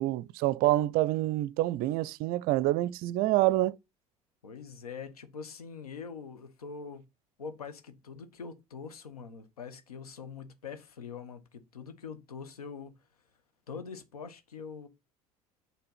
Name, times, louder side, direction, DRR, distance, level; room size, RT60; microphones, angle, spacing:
voice 1, 0.0-3.8, right 16 dB, 50° right, 0.5 m, -27 dB
voice 2, 4.4-7.1 7.4-12.9 13.7-14.9, left 5 dB, 80° left, 1.2 m, -43 dB
9.0 x 3.4 x 5.7 m
figure-of-eight pair, 65°, 19 cm